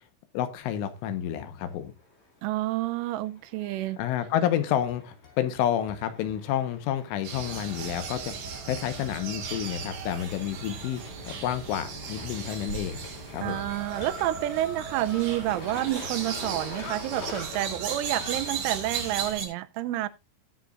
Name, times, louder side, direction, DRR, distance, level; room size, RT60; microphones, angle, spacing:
voice 1, 0.3-1.9 4.0-13.0 13.3-13.6, left 10 dB, 75° left, 3.5 m, -30 dB
sound 1, 0.6-19.3, left 2 dB, 40° left, 5.0 m, -46 dB
voice 2, 2.4-4.0 13.4-20.1, right 15 dB, 80° right, 3.0 m, -29 dB
sound 2, 3.6-4.4 4.9-6.9 7.4-10.0 11.1-14.2, left 6 dB, 60° left, 4.6 m, -52 dB
sound 3, 7.2-19.5, right 5 dB, 65° right, 5.0 m, -36 dB
19.5 x 6.8 x 2.5 m
omnidirectional pair, 5.9 m